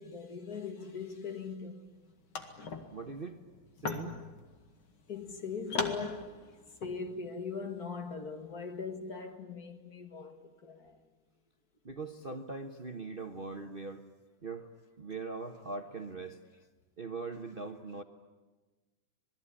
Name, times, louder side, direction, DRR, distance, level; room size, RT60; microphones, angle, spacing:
voice 1, 0.0-1.9 5.1-6.5 6.8-11.0, left 5 dB, 50° left, 2.2 m, -40 dB
sound 1, 1.9-2.0 2.2-7.0, left 4 dB, 85° left, 2.9 m, -40 dB
voice 2, 2.9-3.4 3.8-4.2 11.8-14.1 14.4-14.7 15.0-16.4 17.0-18.0, right 3 dB, 35° right, 1.1 m, -41 dB
26.5 x 21.0 x 9.8 m
omnidirectional pair, 2.2 m